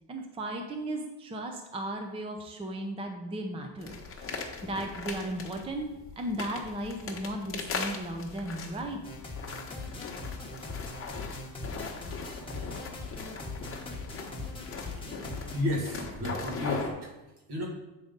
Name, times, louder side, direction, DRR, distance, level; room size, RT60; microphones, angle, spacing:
voice 1, 0.1-4.3 4.6-5.9 6.2-9.0, right 1 dB, 15° right, 4 dB, 0.5 m, -35 dB
sound 1, 3.8-16.9, left 4 dB, 30° left, 1.0 m, -39 dB
sound 2, 9.0-15.6, left 3 dB, 10° left, 1.1 m, -40 dB
voice 2, 15.5-17.1 17.5-17.7, left 1 dB, 65° right, -1 dB, 2.1 m, -32 dB
8.2 x 3.9 x 5.2 m, 1.0 s
cardioid pair, 155°, 42 cm